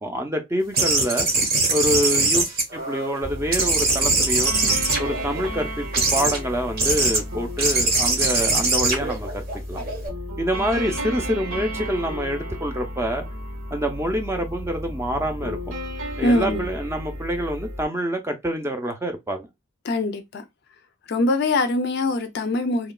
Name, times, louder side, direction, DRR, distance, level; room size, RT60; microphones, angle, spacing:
voice 1, 0.0-1.3 1.7-2.5 2.7-4.5 5.0-5.9 6.1-9.4 9.7-9.8 10.4-13.2 13.7-15.7 16.2-19.5, equal, 10° right, 0.5 m, -26 dB
sound 1, 0.7-3.2 3.5-5.5 5.9-6.4 6.8-7.2 7.6-10.1, right 3 dB, 45° right, 0.8 m, -22 dB
sound 2, 3.2-17.8, equal, 75° right, 1.0 m, -33 dB
voice 2, 16.2-16.6 19.8-20.4 21.1-22.9, left 2 dB, 50° left, 0.4 m, -23 dB
2.9 x 2.3 x 2.2 m
head